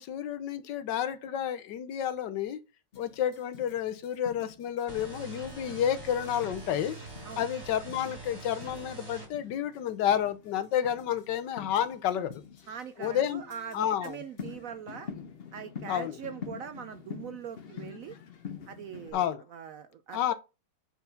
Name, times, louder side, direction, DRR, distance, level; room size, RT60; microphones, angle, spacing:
voice 1, 0.0-2.6 3.0-6.9 7.4-12.4 13.0-13.4 13.7-14.2 15.9-16.1 19.1-19.4 20.1-20.3, left 10 dB, 80° left, 1.4 m, -30 dB
sound 1, 2.9-19.1, left 7 dB, 50° left, 0.8 m, -47 dB
sound 2, 4.9-9.3, right 3 dB, 15° right, 1.9 m, -44 dB
voice 2, 12.7-15.1 15.5-18.2 18.7-20.3, right 8 dB, 70° right, 0.8 m, -42 dB
4.7 x 4.6 x 5.2 m
omnidirectional pair, 1.9 m